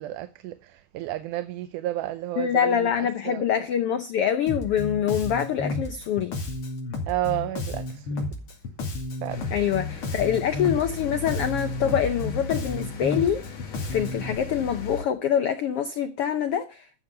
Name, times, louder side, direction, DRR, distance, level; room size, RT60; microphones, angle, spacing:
voice 1, 0.0-3.4 7.1-8.3 9.2-9.5, right 14 dB, 80° right, 2.1 m, -32 dB
voice 2, 2.4-6.4 9.5-13.4 13.8-16.9, left 9 dB, 85° left, 1.3 m, -25 dB
Bass guitar, 4.5-14.4, left 2 dB, 45° left, 3.0 m, -32 dB
sound 1, 9.3-15.0, left 3 dB, 65° left, 0.8 m, -37 dB
12.5 x 7.0 x 6.6 m
omnidirectional pair, 3.8 m